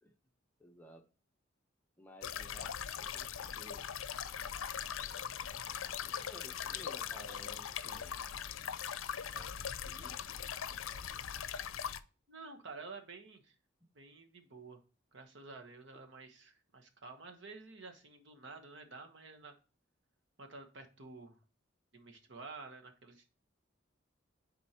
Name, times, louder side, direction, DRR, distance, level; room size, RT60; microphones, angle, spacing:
voice 1, 0.6-1.1 2.0-3.9 5.0-5.7 6.0-8.1 9.3-11.2, equal, 10° left, 3 dB, 0.8 m, -57 dB
small-stream-spatial-sound-rear, 2.2-12.0, left 8 dB, 85° left, 0.5 m, -41 dB
voice 2, 12.3-13.5 13.9-14.8 15.1-19.5 20.4-21.4 21.9-23.3, right 3 dB, 65° right, 5 dB, 1.2 m, -51 dB
9.8 x 4.3 x 2.9 m, 0.35 s
head